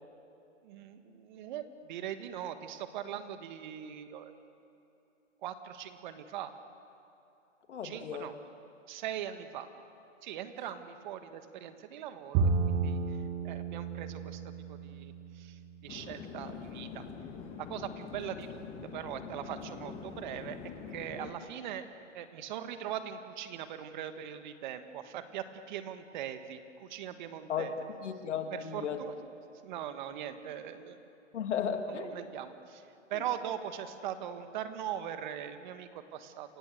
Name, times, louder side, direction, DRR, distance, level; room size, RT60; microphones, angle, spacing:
voice 1, 0.6-4.3 5.4-6.5 7.8-8.3 8.9-9.7 10.2-13.2 13.4-14.4 14.7-17.0 17.6-20.6 20.9-21.8 22.1-27.7 28.5-29.1 29.6-31.0 32.1-36.6, right 10 dB, 40° right, 9 dB, 1.5 m, -41 dB
voice 2, 7.7-8.3 27.5-27.7 28.0-29.0 31.3-32.1, left 7 dB, 65° left, 6 dB, 2.6 m, -34 dB
Bowed string instrument, 12.3-15.7, right 4 dB, 25° right, 1.5 m, -32 dB
Chatter / Fixed-wing aircraft airplane, 15.9-21.3, left 6 dB, 15° left, 1.7 m, -44 dB
28.5 x 16.0 x 7.9 m, 2.8 s
hypercardioid pair, 150°, 38 cm